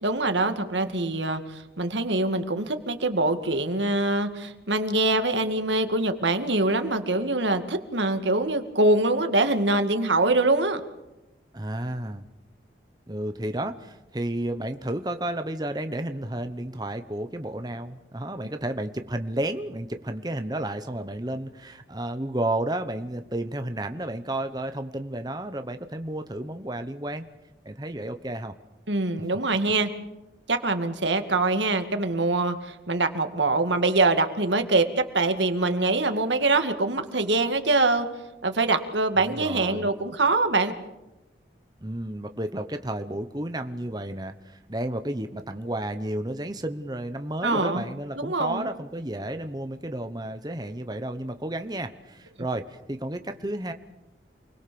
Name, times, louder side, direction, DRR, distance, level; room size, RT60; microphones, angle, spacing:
voice 1, 0.0-10.8 28.9-29.9 30.5-38.1 38.4-40.7 47.4-47.9 48.2-48.7, right 2 dB, 85° right, 8 dB, 2.2 m, -24 dB
voice 2, 11.5-12.2 13.1-27.3 27.6-28.5 39.2-39.9 41.8-53.7, right 1 dB, 20° right, 8 dB, 1.1 m, -32 dB
28.5 x 21.0 x 7.0 m, 0.97 s
head